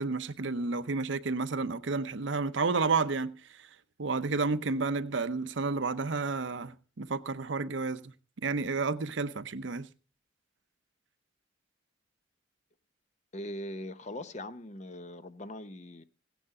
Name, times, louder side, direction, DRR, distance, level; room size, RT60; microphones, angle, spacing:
voice 1, 0.0-3.7 4.0-8.1 8.4-9.9, right 4 dB, 65° right, 0.7 m, -31 dB
voice 2, 13.3-16.0, left 1 dB, 35° left, 0.7 m, -41 dB
16.0 x 9.2 x 4.8 m
head